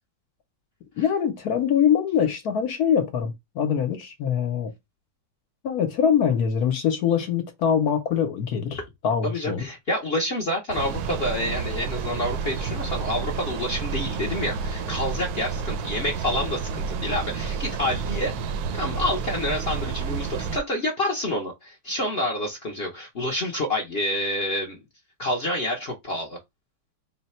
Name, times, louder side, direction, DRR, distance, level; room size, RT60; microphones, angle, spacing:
voice 1, 1.0-4.7 5.6-9.6, left 8 dB, 65° left, 1.1 m, -23 dB
voice 2, 9.2-18.3 18.7-24.8 25.2-26.4, left 1 dB, 50° left, 0.7 m, -28 dB
sound 1, 10.7-20.6, right 5 dB, 70° right, 1.0 m, -30 dB
3.9 x 2.2 x 4.2 m
omnidirectional pair, 2.0 m